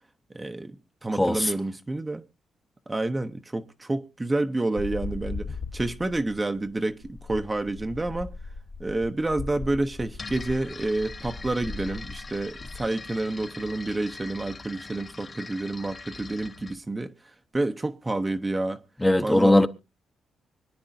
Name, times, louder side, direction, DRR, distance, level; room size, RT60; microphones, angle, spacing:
voice 1, 0.3-2.2 2.9-8.3 8.8-17.1 17.5-18.8 19.2-19.6, right 2 dB, 20° right, 0.8 m, -29 dB
voice 2, 1.2-1.5 19.0-19.7, left 1 dB, 10° left, 0.9 m, -19 dB
sound 1, 4.8-12.9, left 3 dB, 55° left, 1.6 m, -38 dB
sound 2, 10.1-16.8, left 3 dB, 35° left, 2.0 m, -42 dB
25.0 x 9.6 x 2.6 m
cardioid pair, 90°, 0 cm